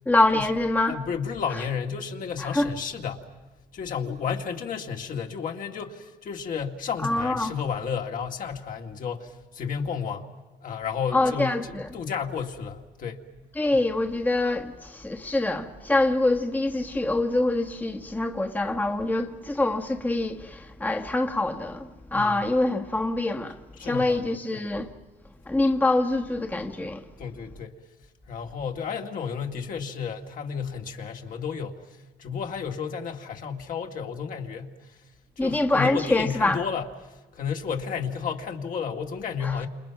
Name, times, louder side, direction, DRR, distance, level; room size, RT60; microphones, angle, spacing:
voice 1, 0.0-1.0 2.4-2.7 7.0-7.5 11.1-11.9 13.6-24.9 25.5-27.0 35.4-36.6 39.4-39.7, left 2 dB, 10° left, 1.4 m, -25 dB
voice 2, 0.9-3.3 3.7-10.3 10.6-11.6 11.9-13.2 22.1-22.4 23.8-24.6 27.2-27.8 28.3-35.0 35.4-39.7, left 6 dB, 55° left, 2.3 m, -32 dB
29.5 x 28.0 x 6.0 m
cardioid pair, 110°, 17 cm